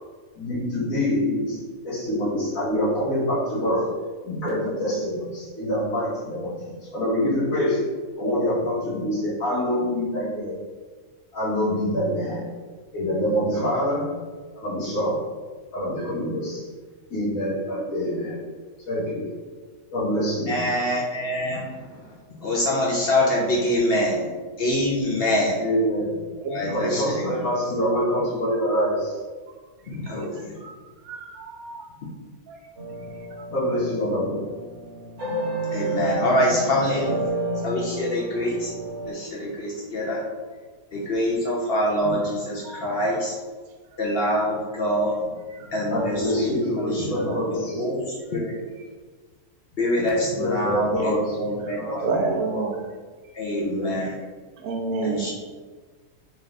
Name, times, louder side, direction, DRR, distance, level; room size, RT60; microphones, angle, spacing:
voice 1, 0.4-3.9 4.2-7.8 8.2-10.6 11.3-12.5 12.9-14.1 14.6-15.3 15.7-16.6 17.1-18.4 18.9-19.3 19.9-20.5 25.6-26.2 26.6-29.2 30.1-30.3 33.5-34.4 45.9-47.9 50.2-51.4 51.7-52.2 52.5-52.7 53.5-54.0, equal, 70° left, -8 dB, 1.8 m, -25 dB
voice 2, 20.5-22.0 22.3-24.3 24.6-25.6 26.5-27.2 29.9-30.5 35.7-37.2 37.6-38.7 39.1-40.2 40.9-43.4 44.0-45.2 45.7-46.5 46.8-47.3 47.8-48.1 48.3-48.6 49.8-52.4 53.3-54.2 55.0-55.3, left 1 dB, 55° left, -4 dB, 0.8 m, -25 dB
voice 3, 26.4-26.7 30.6-30.7 31.0-31.9 32.5-32.6 33.4-33.5 42.6-42.9 51.0-51.1 51.6-52.9 54.6-55.3, right 4 dB, 80° right, 2 dB, 1.1 m, -29 dB
sound 1, 32.8-39.1, right 2 dB, 50° right, 1.2 m, -31 dB
4.1 x 2.5 x 3.2 m, 1.4 s
omnidirectional pair, 1.5 m